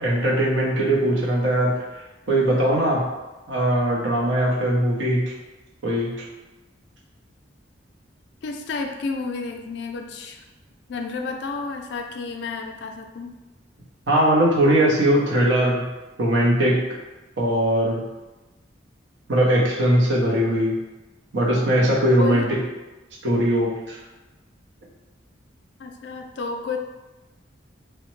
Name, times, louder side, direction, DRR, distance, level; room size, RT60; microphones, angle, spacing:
voice 1, 0.0-1.7 2.3-3.0 3.5-5.3 5.8-6.1 14.1-15.9 16.2-16.9 17.4-18.0 19.3-20.7 21.3-22.5 23.2-24.0, right 1 dB, 70° right, -3 dB, 0.7 m, -20 dB
voice 2, 8.4-10.4 10.9-13.4 22.2-22.5 25.8-26.8, left 4 dB, 60° left, 3 dB, 0.3 m, -31 dB
3.0 x 2.1 x 3.0 m, 1.1 s
head